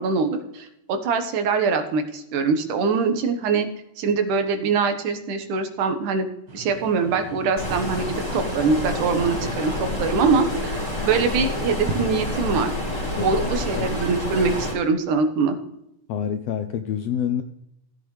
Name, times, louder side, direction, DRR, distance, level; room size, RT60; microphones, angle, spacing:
voice 1, 0.0-3.7 4.0-12.7 13.1-15.6, right 4 dB, 80° right, 7 dB, 2.8 m, -23 dB
sound 1, 6.5-14.7, right 2 dB, 40° right, 2.1 m, -41 dB
Stream, 7.6-14.7, left 1 dB, 25° left, 3.5 m, -28 dB
voice 2, 13.1-13.5 13.7-13.9 16.1-17.4, left 8 dB, 80° left, 7 dB, 1.5 m, -27 dB
16.0 x 8.6 x 3.3 m, 0.81 s
omnidirectional pair, 3.5 m